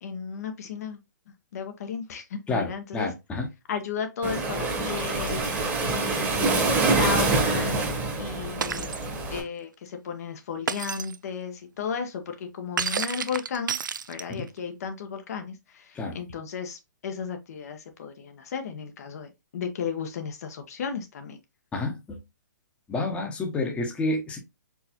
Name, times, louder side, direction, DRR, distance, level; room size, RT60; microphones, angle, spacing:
voice 1, 0.0-1.0 1.5-3.1 3.7-7.8 8.2-9.0 9.3-13.8 14.1-21.4, left 6 dB, 55° left, 0.9 m, -34 dB
voice 2, 2.5-3.5 14.3-14.4 15.9-16.2 21.7-22.2 22.9-24.4, left 2 dB, 10° left, 0.9 m, -29 dB
Waves surf, 4.2-9.4, right 3 dB, 15° right, 1.3 m, -25 dB
Shatter, 8.6-9.0 10.7-11.2 12.8-14.5, right 7 dB, 85° right, 0.4 m, -30 dB
4.6 x 3.2 x 2.8 m
hypercardioid pair, 145°, 10 cm